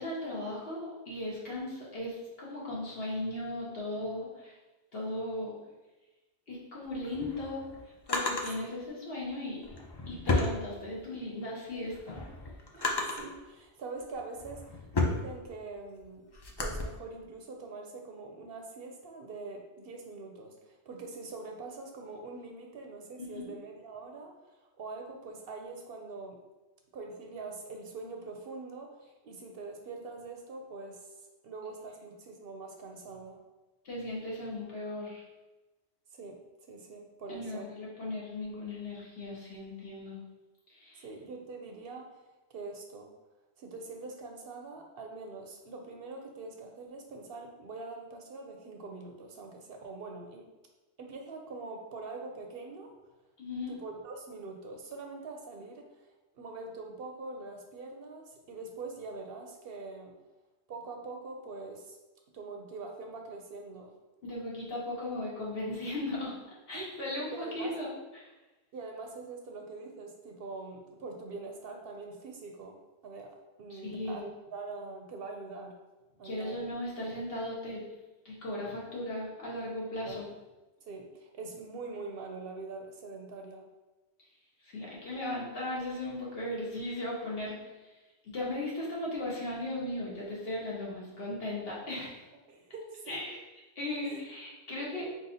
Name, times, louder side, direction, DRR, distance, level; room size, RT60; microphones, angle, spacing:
voice 1, 0.0-4.6 4.9-5.6 6.5-7.6 8.1-9.7 10.1-12.2 23.3-23.5 33.8-35.2 37.3-40.2 40.7-41.0 53.4-53.7 64.2-66.3 66.7-68.3 73.7-74.2 76.2-77.8 78.2-80.2 84.6-87.9 88.2-92.2 93.1-93.4 93.7-95.1, left 1 dB, 60° left, -5 dB, 1.4 m, -37 dB
Drawer open or close, 6.9-8.5 9.6-11.2 11.7-13.4 14.0-16.8, left 2 dB, 40° left, 0.3 m, -33 dB
voice 2, 12.7-16.2 16.6-26.4 26.9-29.0 29.2-31.2 31.4-33.4 36.1-36.4 36.7-37.7 41.0-42.2 42.5-43.1 43.6-50.5 51.0-52.9 53.7-56.1 56.3-60.1 60.7-62.0 62.3-63.9 66.7-66.9 67.3-67.8 68.7-72.8 73.0-75.8 76.2-76.6 80.0-80.2 80.9-83.7 92.5-93.2 94.0-94.2 94.8-95.0, right 3 dB, 65° right, 2 dB, 0.7 m, -44 dB
4.3 x 3.8 x 2.7 m, 1.1 s
omnidirectional pair, 1.1 m